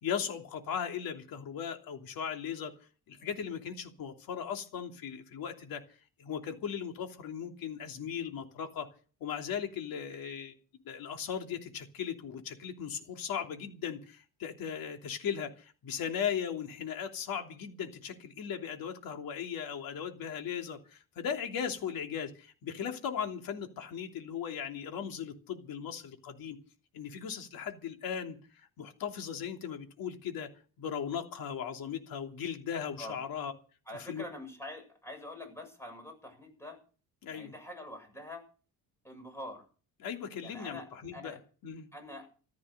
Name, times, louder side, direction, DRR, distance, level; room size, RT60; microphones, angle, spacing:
voice 1, 0.0-2.7 3.1-5.8 6.2-8.9 9.2-10.5 10.8-26.6 26.9-30.5 30.8-33.5 33.9-34.2 37.2-37.5 40.0-41.9, left 8 dB, 70° left, 3.1 m, -38 dB
voice 2, 33.9-36.8 37.3-38.4 39.0-39.6 40.4-40.9 41.1-41.4 41.9-42.3, left 1 dB, 5° left, 7.5 m, -45 dB
15.0 x 13.0 x 6.7 m
cardioid pair, 145°, 37 cm